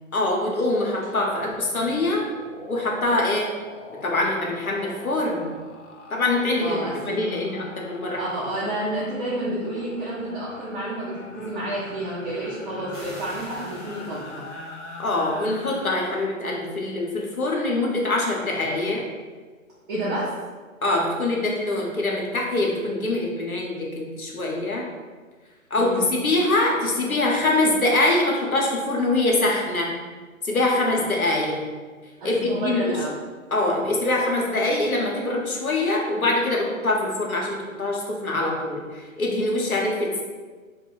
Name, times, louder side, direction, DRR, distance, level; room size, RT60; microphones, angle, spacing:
voice 1, 0.1-2.3 2.7-3.5 4.0-5.5 6.1-8.2 15.0-19.0 20.8-24.9 25.7-29.9 30.4-31.6 32.2-33.0 33.5-40.2, left 2 dB, 90° left, -1 dB, 0.8 m, -24 dB
sound 1, 1.0-1.2 1.5-15.9, left 2 dB, 55° left, 0.6 m, -43 dB
voice 2, 6.6-7.5 8.2-14.4 19.9-20.3 25.8-26.1 32.2-33.2, right 1 dB, 40° right, -8 dB, 0.7 m, -30 dB
sound 2, 12.9-15.5, equal, 20° right, 0.3 m, -46 dB
2.4 x 2.2 x 3.8 m, 1.4 s
figure-of-eight pair, 115°, 41 cm